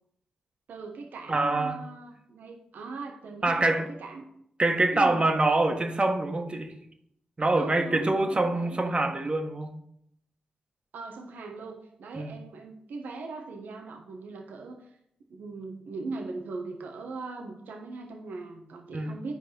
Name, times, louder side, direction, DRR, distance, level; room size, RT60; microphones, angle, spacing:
voice 1, 0.7-4.3 4.9-5.2 7.5-8.8 10.9-14.9 15.3-19.4, right 3 dB, 75° right, 1.2 m, -39 dB
voice 2, 1.3-1.8 3.4-3.9 4.6-6.7 7.4-9.7 12.1-12.4 18.9-19.2, right 2 dB, 35° right, 1.6 m, -25 dB
11.0 x 4.7 x 4.4 m
supercardioid pair, 40°, 3 cm